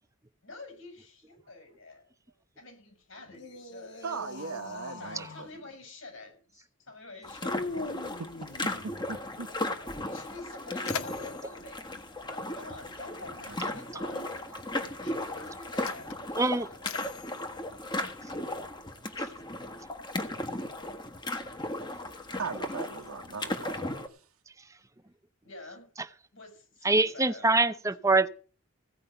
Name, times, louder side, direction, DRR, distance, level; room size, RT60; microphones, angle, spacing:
voice 1, 0.4-2.1 2.6-4.1 5.0-7.7 10.1-16.1 16.7-16.8 25.4-25.9 26.3-27.7, left 2 dB, 70° left, 6.1 m, -48 dB
sound 1, 3.3-5.5 7.4-9.2 10.8-11.3, left 2 dB, 55° left, 1.6 m, -42 dB
voice 2, 4.0-5.5 8.2-8.3 8.6-9.5 12.4-12.7 13.5-13.6 22.4-23.9, right 4 dB, 85° right, 1.0 m, -39 dB
sound 2, 7.2-24.1, left 1 dB, 20° left, 1.4 m, -36 dB
Mechanisms, 10.4-13.1 14.1-14.2 15.0-18.6, left 7 dB, 90° left, 1.0 m, -43 dB
voice 3, 16.4-16.7 19.2-19.3 26.8-28.3, right 3 dB, 15° right, 0.7 m, -24 dB
16.5 x 5.5 x 9.0 m
head